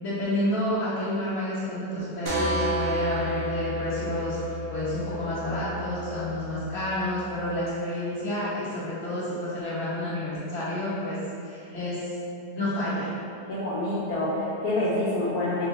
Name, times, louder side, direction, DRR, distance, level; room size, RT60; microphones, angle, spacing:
voice 1, 0.0-12.1 12.5-13.1, left 1 dB, 45° left, -11 dB, 1.5 m, -30 dB
sound 1, 2.3-7.7, equal, 60° right, 0.7 m, -31 dB
voice 2, 13.5-15.7, left 1 dB, 75° left, -9 dB, 1.1 m, -27 dB
3.9 x 2.0 x 3.8 m, 2.7 s
omnidirectional pair, 1.7 m